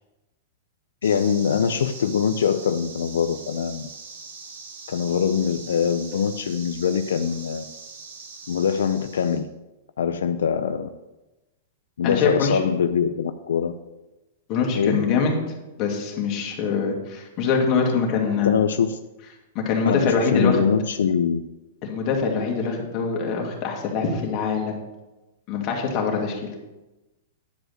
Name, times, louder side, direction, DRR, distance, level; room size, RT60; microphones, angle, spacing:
voice 1, 1.0-3.9 4.9-7.6 8.5-9.5 10.0-10.9 12.0-13.7 14.8-15.0 18.4-19.0 19.8-21.4, left 7 dB, 90° left, 9 dB, 0.5 m, -23 dB
sound 1, 1.0-9.4, right 4 dB, 80° right, 2.4 m, -42 dB
voice 2, 12.0-12.6 14.5-15.4 15.8-18.5 19.5-20.6 21.8-24.8 25.5-26.5, left 5 dB, 40° left, 0 dB, 2.2 m, -24 dB
10.5 x 5.0 x 6.5 m, 1.0 s
hypercardioid pair, 145°, 0 cm